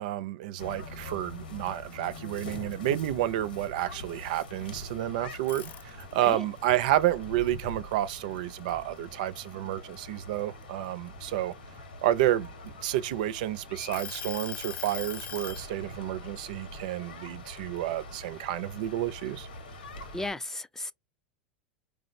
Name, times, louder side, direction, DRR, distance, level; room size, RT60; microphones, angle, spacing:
voice 1, 0.0-11.5 12.0-19.5, right 13 dB, 65° right, 0.4 m, -30 dB
sound 1, 0.6-20.3, left 2 dB, 90° left, 1.2 m, -44 dB
sound 2, 5.5-6.3 6.8-8.6 9.0-9.3 9.7-11.5 12.2-13.4 13.9-15.7, left 9 dB, 35° left, 0.7 m, -40 dB
voice 2, 20.1-20.9, left 2 dB, 10° left, 0.4 m, -35 dB
4.7 x 2.0 x 2.6 m
hypercardioid pair, 105°, 5 cm